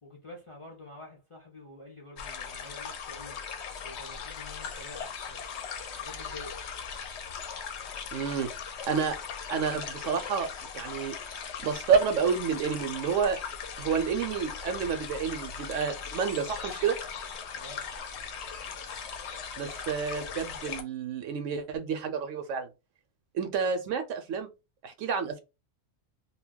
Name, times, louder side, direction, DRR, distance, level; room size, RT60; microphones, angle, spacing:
voice 1, 0.0-3.4 3.8-5.4 6.0-6.6 17.5-17.9, left 2 dB, 40° left, 0.4 m, -48 dB
sound 1, 2.2-20.8, left 6 dB, 65° left, 0.8 m, -39 dB
voice 2, 8.1-8.5 8.9-9.2 9.5-11.2 11.6-13.4 13.8-17.0 19.6-22.7 23.3-24.5 24.8-25.4, right 6 dB, 75° right, 0.9 m, -29 dB
2.2 x 2.2 x 3.5 m
omnidirectional pair, 1.3 m